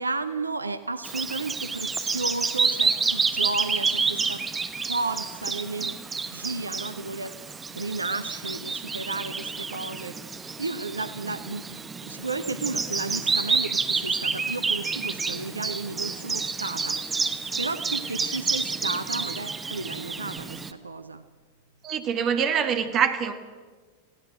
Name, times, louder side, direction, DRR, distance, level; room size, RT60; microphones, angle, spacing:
voice 1, 0.0-4.5 4.8-6.0 6.3-7.5 7.8-17.0 17.6-21.2, right 3 dB, 80° right, 12 dB, 0.7 m, -33 dB
Bird vocalization bird call bird song, 1.0-20.7, right 4 dB, 15° right, 1.1 m, -29 dB
voice 2, 21.8-23.3, right 7 dB, 30° right, 9 dB, 1.8 m, -24 dB
21.5 x 16.5 x 7.7 m, 1.4 s
figure-of-eight pair, 90°, 0 cm